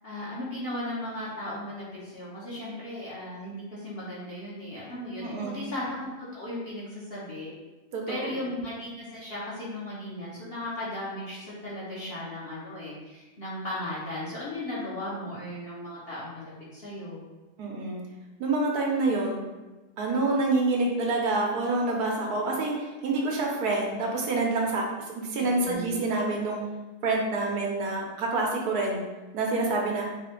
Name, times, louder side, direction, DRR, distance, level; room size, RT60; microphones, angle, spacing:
voice 1, 0.0-7.5 8.1-17.2 25.4-25.9, left 1 dB, 45° left, -8 dB, 1.0 m, -36 dB
voice 2, 5.2-5.7 7.9-8.4 17.6-18.0 18.4-19.4 20.0-26.6 27.0-29.0 29.3-30.0, right 2 dB, 80° right, -1 dB, 1.3 m, -27 dB
4.3 x 2.5 x 3.7 m, 1.2 s
omnidirectional pair, 1.6 m